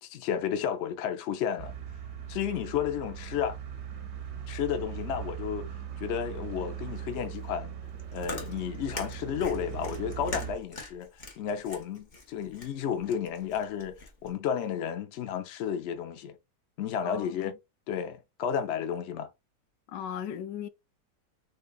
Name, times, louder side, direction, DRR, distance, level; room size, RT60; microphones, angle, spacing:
voice 1, 0.0-1.7 2.3-3.6 4.5-5.7 6.0-7.7 8.1-11.1 11.4-13.9 14.2-16.4 16.8-17.6 17.9-19.3, left 8 dB, 65° left, 0.6 m, -32 dB
sound 1, 1.6-10.5, right 8 dB, 60° right, 0.7 m, -39 dB
Chewing mastication, 7.8-14.3, left 3 dB, 35° left, 0.8 m, -43 dB
voice 2, 17.0-17.5 19.9-20.7, left 9 dB, 85° left, 1.2 m, -37 dB
3.5 x 3.3 x 2.2 m
omnidirectional pair, 1.8 m